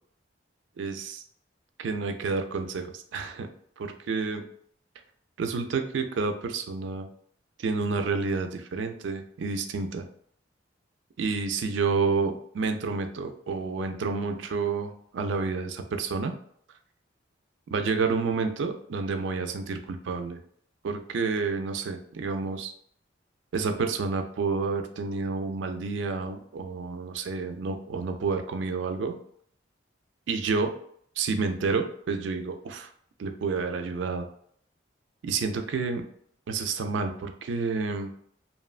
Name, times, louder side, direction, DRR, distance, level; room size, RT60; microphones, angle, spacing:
voice 1, 0.8-1.2 1.8-3.5 3.8-4.5 5.4-7.1 7.6-10.1 11.2-16.3 17.7-20.4 20.8-22.7 23.5-29.2 30.3-30.7 31.2-32.9 33.2-34.3 35.2-36.0 36.5-38.1, right 4 dB, 70° right, 7 dB, 0.4 m, -29 dB
2.8 x 2.1 x 2.3 m, 0.64 s
head